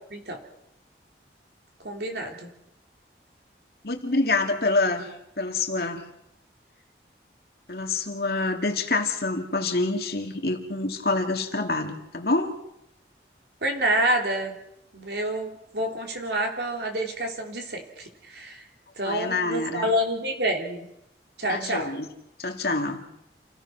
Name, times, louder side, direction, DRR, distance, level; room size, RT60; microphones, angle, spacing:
voice 1, 1.8-2.5 13.6-14.5 14.9-18.6 19.0-20.9 21.4-21.9, right 1 dB, 70° right, 2 dB, 3.5 m, -28 dB
voice 2, 3.8-5.1 5.4-6.0 7.7-12.6 19.0-19.9 21.5-22.1 22.4-23.0, left 3 dB, 60° left, 4 dB, 2.3 m, -26 dB
28.5 x 16.0 x 6.1 m, 0.82 s
head